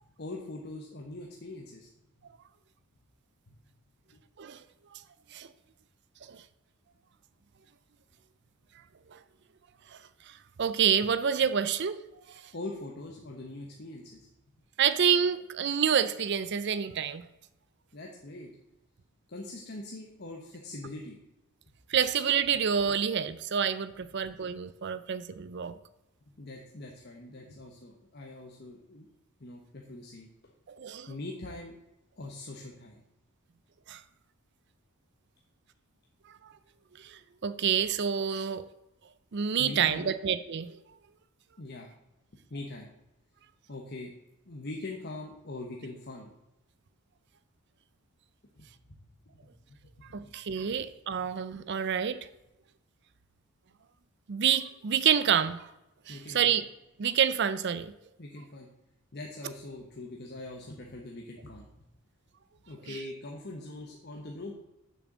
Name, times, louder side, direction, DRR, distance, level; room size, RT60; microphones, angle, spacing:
voice 1, 0.2-1.9 4.1-4.2 12.5-14.3 17.9-18.5 19.3-21.2 26.4-29.1 29.4-30.3 31.1-31.7 32.2-33.0 39.6-40.4 41.6-41.9 42.5-42.9 43.7-44.1 44.4-46.3 48.6-49.0 49.3-49.5 50.0-50.6 51.2-51.3 56.1-56.6 58.2-58.7 59.1-61.9 62.7-64.5, left 2 dB, 45° left, 0 dB, 1.1 m, -42 dB
voice 2, 10.3-12.0 12.3-12.4 14.8-17.2 21.9-25.8 30.8-31.1 33.9-34.0 37.0-38.6 39.3-40.7 50.1-52.2 54.3-55.7 56.1-56.6 57.0-57.9 62.9-63.0, right 7 dB, 50° right, 13 dB, 0.4 m, -28 dB
6.9 x 6.3 x 7.3 m, 0.90 s
head